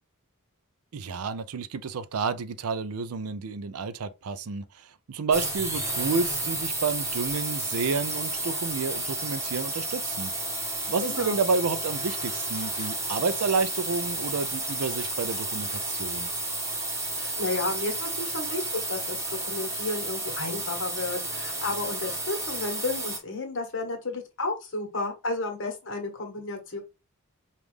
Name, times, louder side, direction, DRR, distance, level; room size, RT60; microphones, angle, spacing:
voice 1, 0.9-10.3 10.9-16.3, right 4 dB, 80° right, 0.5 m, -30 dB
sound 1, 5.3-23.2, right 2 dB, 15° right, 1.0 m, -32 dB
voice 2, 11.0-11.4 17.1-26.8, left 2 dB, 60° left, 1.4 m, -32 dB
5.2 x 2.5 x 3.2 m
head